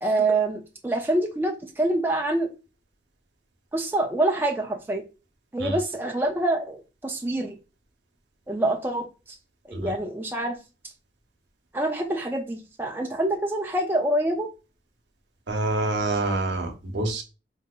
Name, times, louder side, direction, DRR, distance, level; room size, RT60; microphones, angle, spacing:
voice 1, 0.0-2.5 3.7-5.0 5.5-7.6 8.5-9.4 9.7-10.6 11.7-14.5, right 2 dB, 10° right, 2 dB, 0.3 m, -26 dB
voice 2, 15.5-17.2, right 2 dB, 70° right, 3 dB, 0.8 m, -27 dB
3.6 x 2.7 x 2.3 m, 0.31 s
head